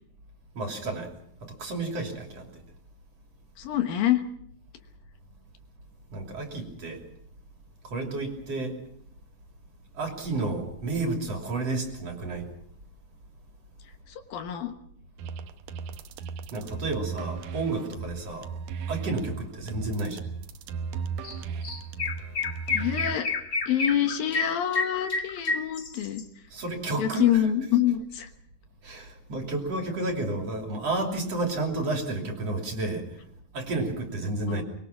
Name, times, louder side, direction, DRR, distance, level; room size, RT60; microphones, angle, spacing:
voice 1, 0.6-1.1 1.4-2.6 6.1-7.0 7.8-8.8 9.9-12.5 16.5-18.5 18.9-20.3 26.5-27.4 28.8-33.1 33.5-34.6, right 2 dB, 45° right, 3 dB, 3.7 m, -31 dB
voice 2, 3.6-4.2 14.3-14.7 22.7-23.3 23.7-26.2 27.0-28.3 34.5-34.6, left 11 dB, 70° left, 7 dB, 3.0 m, -26 dB
sound 1, 15.2-23.2, right 6 dB, 70° right, 2.3 m, -36 dB
Chirp tweet, 21.2-21.4 21.6-26.2, left 4 dB, 30° left, 1.7 m, -30 dB
24.0 x 22.0 x 5.9 m, 0.68 s
omnidirectional pair, 4.4 m